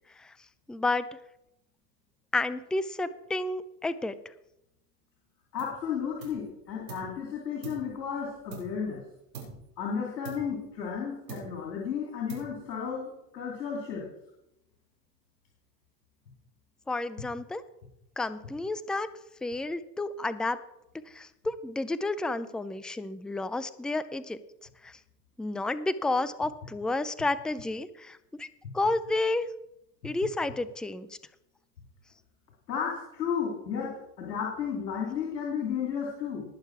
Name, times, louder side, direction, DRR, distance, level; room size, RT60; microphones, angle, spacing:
voice 1, 0.7-1.1 2.3-4.1 16.9-17.6 18.2-19.1 19.4-20.6 21.1-24.4 24.8-25.0 25.4-28.5 28.7-29.5 30.0-31.1, left 2 dB, ahead, 15 dB, 0.5 m, -31 dB
voice 2, 5.5-9.0 9.8-14.1 32.7-36.4, left 7 dB, 85° left, -2 dB, 3.1 m, -33 dB
sound 1, 5.6-5.9 6.2-7.2 7.6-9.0 9.3-9.8 10.2-11.0 11.3-11.8 12.3-12.8, right 5 dB, 85° right, 5.0 m, -45 dB
19.5 x 6.7 x 4.7 m, 0.86 s
hypercardioid pair, 85°, 49 cm